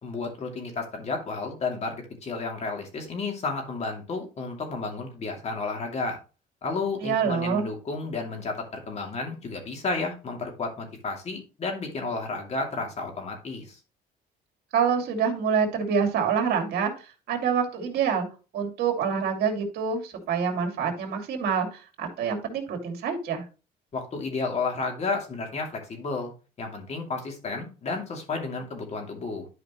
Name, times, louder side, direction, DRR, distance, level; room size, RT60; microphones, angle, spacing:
voice 1, 0.0-6.2 6.6-13.8 23.9-26.3 26.6-29.5, left 3 dB, 40° left, 2 dB, 2.7 m, -32 dB
voice 2, 7.0-7.7 14.7-18.3 18.5-23.4, right 6 dB, 70° right, 4 dB, 2.5 m, -26 dB
12.0 x 5.0 x 3.1 m, 0.33 s
cardioid pair, 110°, 17 cm